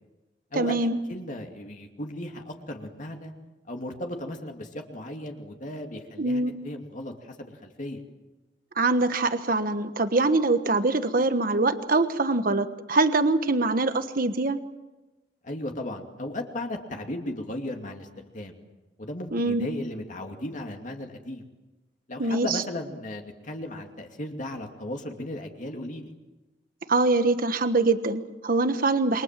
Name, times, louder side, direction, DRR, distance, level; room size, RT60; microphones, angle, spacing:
voice 1, 0.5-1.0 6.2-6.5 8.8-14.6 19.3-19.7 22.2-22.6 26.9-29.2, right 3 dB, 55° right, 10 dB, 1.3 m, -24 dB
voice 2, 1.1-3.3 3.7-8.0 15.4-18.1 18.3-18.6 19.0-21.4 22.1-26.1, left 1 dB, 45° left, 3 dB, 2.5 m, -36 dB
28.5 x 25.0 x 7.6 m, 1.1 s
head